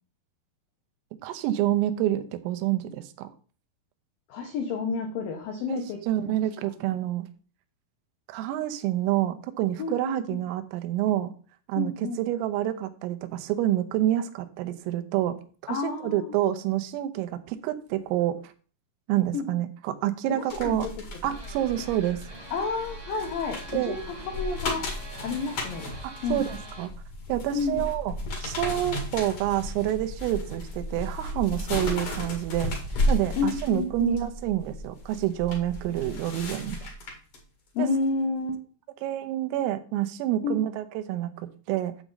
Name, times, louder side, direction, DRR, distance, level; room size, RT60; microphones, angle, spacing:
voice 1, 1.2-3.3 5.7-5.8 6.1-7.3 8.3-11.3 11.7-15.4 15.7-18.5 19.1-20.9 21.2-22.2 23.7-24.0 26.0-26.9 27.3-28.2 28.4-32.7 33.1-36.9 37.8-37.9 39.0-41.9, right 13 dB, 90° right, 8 dB, 3.5 m, -28 dB
voice 2, 4.3-6.4 9.8-10.2 11.8-12.2 15.7-16.4 19.3-19.5 20.3-20.9 21.2-21.3 22.5-24.8 25.2-25.9 26.2-26.5 27.5-27.8 33.4-34.1 37.7-38.6 40.4-40.6, left 4 dB, 85° left, 2 dB, 2.0 m, -30 dB
sound 1, 20.5-37.4 37.8-38.0, left 1 dB, 65° left, 1.4 m, -34 dB
sound 2, 21.3-26.9, right 1 dB, 30° right, 0.9 m, -45 dB
9.1 x 7.2 x 4.0 m, 0.39 s
omnidirectional pair, 5.9 m